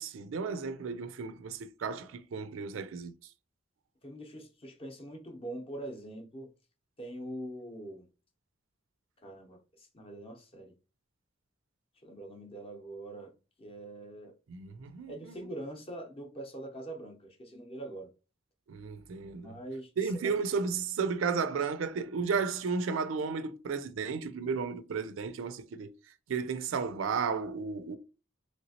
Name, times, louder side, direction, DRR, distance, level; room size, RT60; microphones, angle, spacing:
voice 1, 0.0-3.1 14.5-15.4 18.7-19.5 20.0-25.9 26.3-28.0, right 5 dB, 80° right, 0.4 m, -33 dB
voice 2, 4.0-6.5 7.0-8.1 9.2-10.7 12.0-13.3 13.6-14.3 15.1-18.1 19.3-20.1, right 1 dB, 30° left, 0.7 m, -43 dB
3.1 x 2.9 x 2.8 m
head